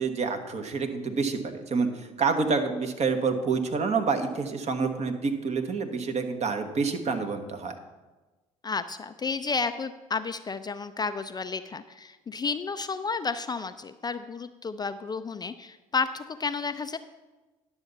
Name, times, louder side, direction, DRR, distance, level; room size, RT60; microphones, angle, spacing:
voice 1, 0.0-7.8, right 4 dB, 40° right, 6 dB, 1.2 m, -28 dB
voice 2, 8.6-17.0, left 4 dB, 25° left, 11 dB, 0.4 m, -32 dB
10.5 x 7.0 x 4.0 m, 1.2 s
hypercardioid pair, 55°, 17 cm